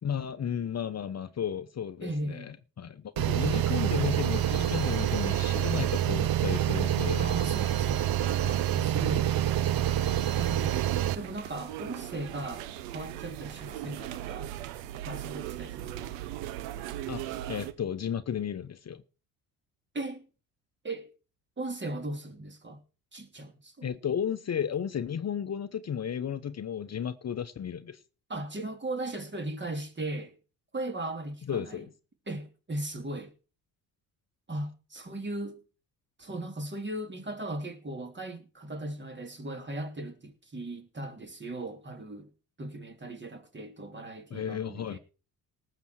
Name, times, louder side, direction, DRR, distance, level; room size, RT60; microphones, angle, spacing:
voice 1, 0.0-7.3 17.1-17.2 17.5-19.0 23.8-28.0 31.5-31.9 44.3-45.0, left 8 dB, 35° left, 1.0 m, -33 dB
voice 2, 2.0-2.5 7.2-9.7 10.4-10.8 11.1-14.5 15.0-16.1 19.9-20.2 20.8-21.1 21.6-22.8 23.1-23.9 28.3-30.3 30.7-31.8 32.3-33.3 34.5-35.6 36.2-42.3 42.6-45.0, right 1 dB, 25° right, 3.3 m, -38 dB
sound 1, 3.2-11.2, right 11 dB, 55° right, 1.0 m, -27 dB
sound 2, 8.2-17.7, right 13 dB, 80° right, 1.2 m, -39 dB
18.5 x 7.8 x 4.7 m
hypercardioid pair, 60°, 42 cm